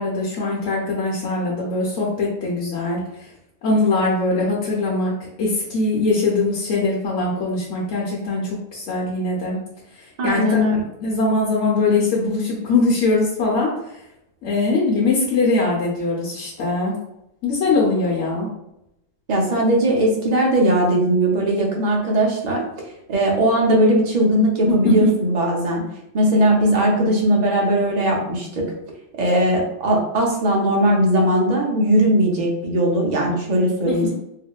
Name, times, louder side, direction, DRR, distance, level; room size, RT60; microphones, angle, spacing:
voice 1, 0.0-3.3 3.6-5.1 5.4-9.6 10.0-10.6 11.0-14.0 14.4-17.0 17.4-18.5 24.7-25.3 33.9-34.1, left 3 dB, 70° left, -4 dB, 1.0 m, -21 dB
voice 2, 10.2-10.8 19.3-22.6 23.1-25.8 26.1-28.6 29.2-34.1, right 1 dB, 45° right, -1 dB, 0.6 m, -19 dB
3.5 x 2.1 x 2.3 m, 0.82 s
omnidirectional pair, 1.3 m